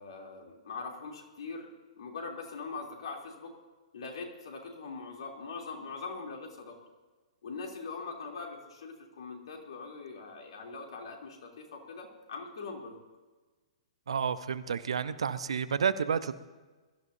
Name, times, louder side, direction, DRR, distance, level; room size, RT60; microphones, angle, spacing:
voice 1, 0.0-1.7 1.9-3.5 3.9-6.8 7.4-13.0, left 4 dB, 60° left, 1 dB, 3.0 m, -42 dB
voice 2, 14.1-16.4, right 7 dB, 65° right, 14 dB, 0.7 m, -30 dB
22.0 x 13.5 x 2.7 m, 1.3 s
figure-of-eight pair, 115°, 3 cm